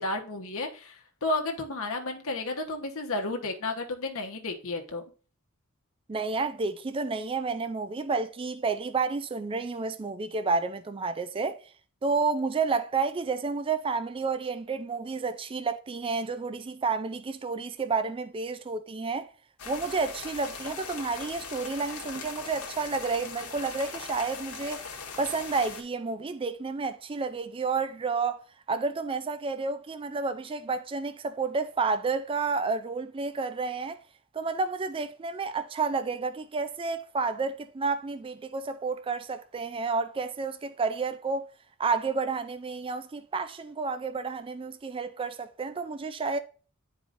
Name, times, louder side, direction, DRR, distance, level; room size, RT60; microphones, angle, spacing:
voice 1, 0.0-5.0, left 2 dB, 65° left, 1.1 m, -32 dB
voice 2, 6.1-11.6 12.0-19.3 19.7-24.8 25.2-28.4 28.7-34.0 34.3-41.5 41.8-46.4, right 4 dB, 25° right, 0.4 m, -30 dB
sound 1, 19.6-25.8, left 5 dB, 85° left, 1.3 m, -40 dB
10.0 x 4.7 x 2.5 m
head